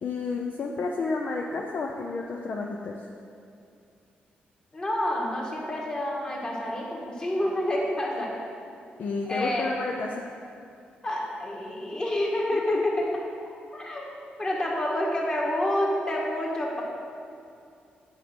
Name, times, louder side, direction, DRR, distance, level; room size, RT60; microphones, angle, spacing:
voice 1, 0.0-3.1 9.0-10.3 12.5-13.0, left 3 dB, 55° left, 1 dB, 0.6 m, -31 dB
voice 2, 4.7-8.3 9.3-9.7 11.0-13.1 13.7-16.8, left 1 dB, 25° left, -3 dB, 1.8 m, -28 dB
9.0 x 5.2 x 6.2 m, 2.5 s
cardioid pair, 120°, 3 cm